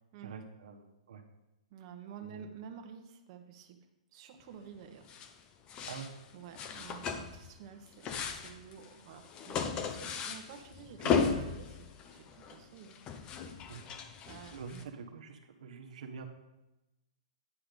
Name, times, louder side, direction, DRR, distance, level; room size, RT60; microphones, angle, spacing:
voice 1, 0.2-1.2 2.2-2.5 5.9-6.1 11.0-11.5 13.7-13.8 14.5-16.3, right 6 dB, 70° right, 4 dB, 1.4 m, -45 dB
voice 2, 1.7-3.8 4.1-5.1 5.8-5.9 6.3-11.0 11.5-11.6 12.1-12.9 14.3-14.6, right 7 dB, 40° right, 5 dB, 1.2 m, -50 dB
sound 1, 5.1-5.4 5.7-6.1 6.6-7.6 7.9-14.8, left 6 dB, 25° left, 0.7 m, -36 dB
9.5 x 5.9 x 5.3 m, 0.96 s
hypercardioid pair, 150°, 4 cm